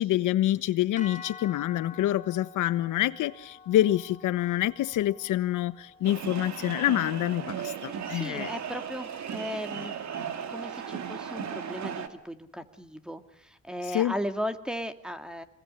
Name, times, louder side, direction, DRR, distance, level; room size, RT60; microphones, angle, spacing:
voice 1, 0.0-8.5 13.9-14.1, left 13 dB, 85° left, 14 dB, 1.2 m, -27 dB
sound 1, 1.0-9.2, left 6 dB, 25° left, 3.7 m, -49 dB
sound 2, 6.0-12.1, right 7 dB, 65° right, 2.6 m, -36 dB
voice 2, 7.9-9.9 10.5-15.4, equal, 5° right, 8 dB, 2.3 m, -36 dB
27.0 x 21.0 x 9.9 m, 0.69 s
cardioid pair, 90°, 30 cm